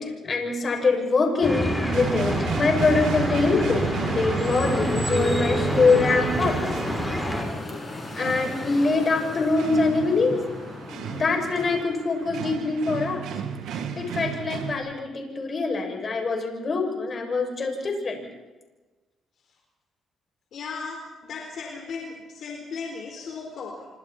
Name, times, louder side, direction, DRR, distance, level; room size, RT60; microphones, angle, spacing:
voice 1, 0.0-6.6 8.1-10.4 11.1-13.2 13.7-18.2, left 3 dB, 40° left, 2 dB, 6.8 m, -24 dB
sound 1, 1.4-7.4, equal, ahead, 6.9 m, -27 dB
sound 2, 1.9-14.7, right 7 dB, 85° right, 2.3 m, -34 dB
sound 3, 4.5-11.8, left 2 dB, 25° left, 7.7 m, -37 dB
voice 2, 20.5-21.0 21.2-23.9, left 5 dB, 65° left, 1 dB, 4.3 m, -36 dB
28.0 x 25.5 x 4.4 m, 1.2 s
cardioid pair, 90°, 0 cm